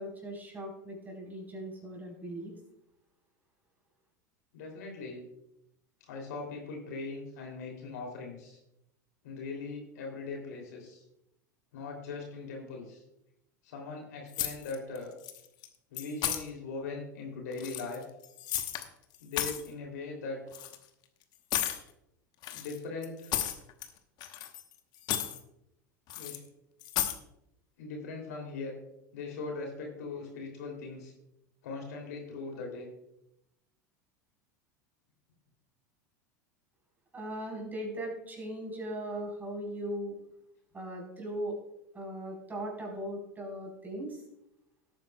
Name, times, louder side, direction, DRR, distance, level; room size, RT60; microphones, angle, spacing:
voice 1, 0.0-2.5 37.1-40.2 40.7-41.6 41.9-44.2, right 1 dB, 20° right, 0 dB, 4.3 m, -39 dB
voice 2, 4.5-5.2 6.1-8.6 9.2-11.0 11.7-13.0 13.6-15.1 15.9-18.0 19.2-20.4 22.5-23.4 26.1-26.4 27.8-28.7 29.1-31.1 31.6-32.9, left 3 dB, 70° left, 1 dB, 3.1 m, -40 dB
sound 1, 14.3-15.0 15.2-15.7 16.0-16.4 17.5-18.9 19.1-19.7 20.5-20.8 21.5-21.8 22.4-23.9 24.2-24.7 25.0-25.4 26.1-26.4 26.8-27.2, left 12 dB, 45° left, 1.1 m, -33 dB
17.5 x 8.8 x 2.3 m, 0.82 s
hypercardioid pair, 85°, 10 cm